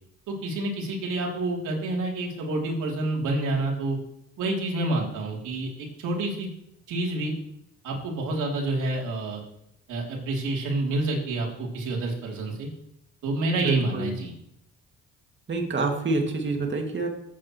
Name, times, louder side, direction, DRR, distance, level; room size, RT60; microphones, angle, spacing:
voice 1, 0.3-4.0 4.4-6.5 6.9-7.3 7.8-9.4 9.9-12.7 13.2-14.3, right 2 dB, 85° right, -1 dB, 3.1 m, -28 dB
voice 2, 13.6-14.1 15.5-17.1, right 3 dB, 40° right, 2 dB, 2.2 m, -27 dB
15.0 x 8.5 x 3.1 m, 0.75 s
cardioid pair, 90°, 30 cm